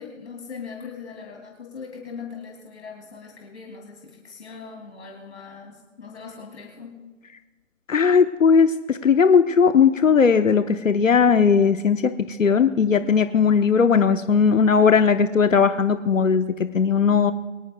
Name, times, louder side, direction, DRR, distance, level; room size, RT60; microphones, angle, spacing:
voice 1, 0.0-7.0, left 5 dB, 55° left, 0 dB, 2.7 m, -40 dB
voice 2, 7.9-17.3, left 6 dB, 80° left, 9 dB, 0.9 m, -18 dB
23.5 x 14.0 x 2.3 m, 1.3 s
figure-of-eight pair, 155°, 38 cm